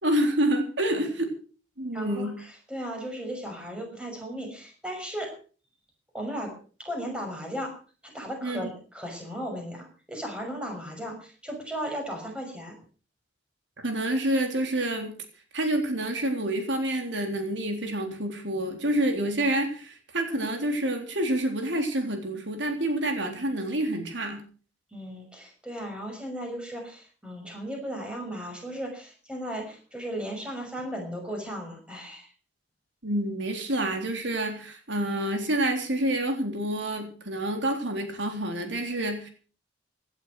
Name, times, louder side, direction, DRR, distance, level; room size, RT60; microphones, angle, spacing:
voice 1, 0.0-1.3 1.8-2.4 8.4-8.7 13.8-15.2 15.5-24.4 33.0-39.3, right 1 dB, 75° right, 4 dB, 3.8 m, -28 dB
voice 2, 1.9-5.3 6.1-6.5 6.8-7.7 8.0-12.8 24.9-32.3, equal, 5° right, 2 dB, 6.0 m, -36 dB
17.0 x 11.5 x 6.2 m, 0.40 s
head